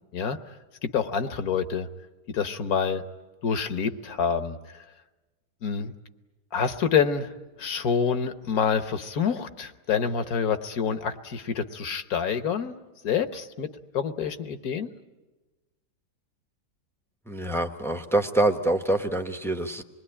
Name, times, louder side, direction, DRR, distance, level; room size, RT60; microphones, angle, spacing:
voice 1, 0.8-1.9 2.3-3.0 3.4-4.8 5.6-5.9 6.5-7.3 7.6-12.7 13.0-14.9, left 6 dB, 65° left, 10 dB, 1.5 m, -27 dB
voice 2, 17.3-19.8, right 1 dB, ahead, 5 dB, 0.9 m, -25 dB
26.5 x 20.5 x 9.9 m, 1.2 s
omnidirectional pair, 1.8 m